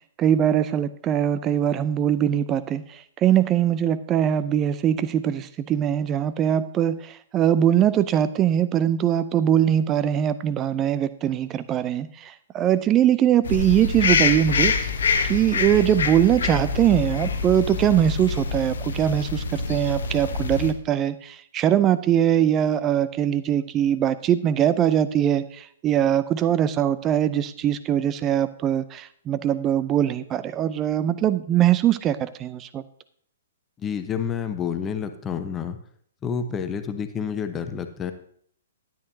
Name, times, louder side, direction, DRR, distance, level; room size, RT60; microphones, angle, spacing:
voice 1, 0.2-14.7 15.2-32.8, right 10 dB, 20° right, 15 dB, 0.5 m, -22 dB
sound 1, 13.4-20.7, left 5 dB, 60° left, 1.0 m, -26 dB
voice 2, 33.8-35.8 36.2-38.1, left 7 dB, 15° left, 8 dB, 0.9 m, -29 dB
12.5 x 10.5 x 2.7 m, 0.62 s
figure-of-eight pair, 120°, 0 cm